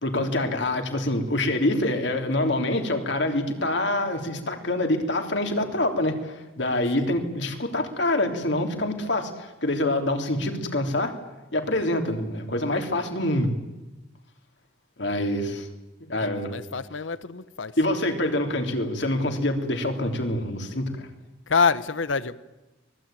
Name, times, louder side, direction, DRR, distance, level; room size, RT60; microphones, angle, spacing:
voice 1, 0.0-11.1 11.5-13.5 15.0-15.7 16.1-16.5 17.8-21.1, left 1 dB, 65° left, 5 dB, 3.3 m, -26 dB
voice 2, 16.2-17.7 21.5-22.4, left 5 dB, 85° left, 16 dB, 1.0 m, -26 dB
24.5 x 20.5 x 9.1 m, 1.1 s
head